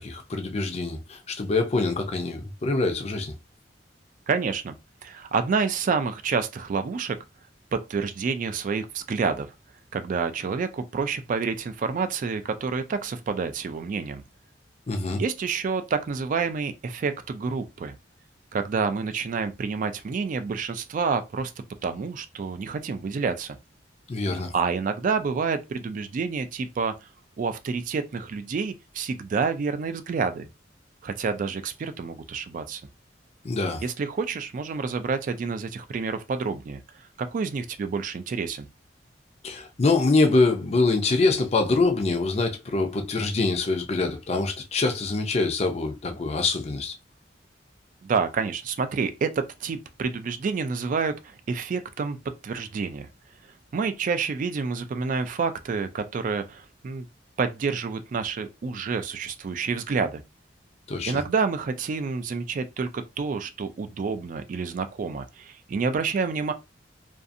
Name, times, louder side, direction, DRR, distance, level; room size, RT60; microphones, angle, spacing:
voice 1, 0.0-3.4 14.9-15.2 24.1-24.5 33.4-33.8 39.4-46.9 60.9-61.1, left 3 dB, 35° left, 0.5 m, -24 dB
voice 2, 4.3-4.8 5.0-7.2 7.7-9.5 9.9-14.2 15.2-18.0 18.5-21.5 21.8-23.6 24.5-26.9 27.4-30.5 31.0-32.8 33.8-38.7 48.0-52.2 52.4-53.1 53.7-57.1 57.4-60.2 61.1-66.5, right 5 dB, 45° right, 0.3 m, -28 dB
2.5 x 2.4 x 2.5 m
head